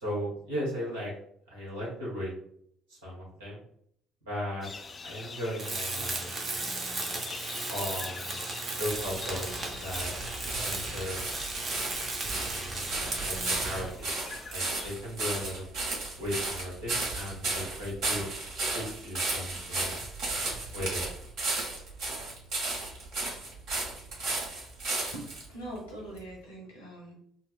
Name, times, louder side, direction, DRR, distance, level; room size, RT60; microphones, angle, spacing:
voice 1, 0.0-1.1 1.5-2.3 2.9-3.6 4.2-4.7 5.0-6.3 7.7-8.4 8.8-10.1 10.5-11.2 12.2-12.9 13.2-14.1 14.5-15.6 16.1-18.3 18.7-20.0 20.7-21.0, equal, 80° right, -6 dB, 1.3 m, -36 dB
sound 1, 4.6-15.0, left 4 dB, 35° left, 0.4 m, -45 dB
Tools, 5.6-14.0, right 2 dB, 45° right, 0.8 m, -36 dB
sound 2, 9.4-25.5 26.2-26.3, right 2 dB, 60° right, 1.1 m, -34 dB
voice 2, 25.5-27.1, right 1 dB, 85° left, -1 dB, 1.2 m, -42 dB
4.1 x 2.0 x 2.3 m, 0.67 s
figure-of-eight pair, 50°, 0 cm